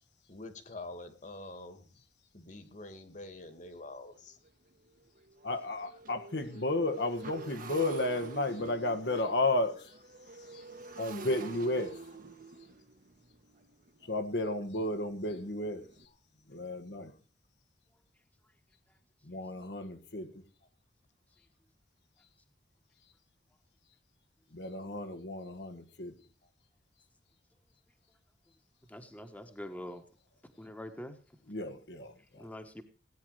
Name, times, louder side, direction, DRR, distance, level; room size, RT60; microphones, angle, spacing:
voice 1, 0.3-1.9 2.3-4.4, left 2 dB, 45° left, 2.2 m, -46 dB
Motorcycle, 3.4-3.5 4.0-4.2 4.4-16.0, right 3 dB, 55° right, 1.4 m, -48 dB
voice 2, 5.4-9.9 10.5-10.6 11.0-12.0 14.1-15.9 16.5-17.1 19.3-20.3 24.5-26.1 31.5-32.4, left 2 dB, 70° left, 1.7 m, -33 dB
voice 3, 28.9-30.0 30.6-31.2 32.4-32.8, left 1 dB, 10° left, 1.4 m, -44 dB
17.5 x 9.7 x 4.8 m
head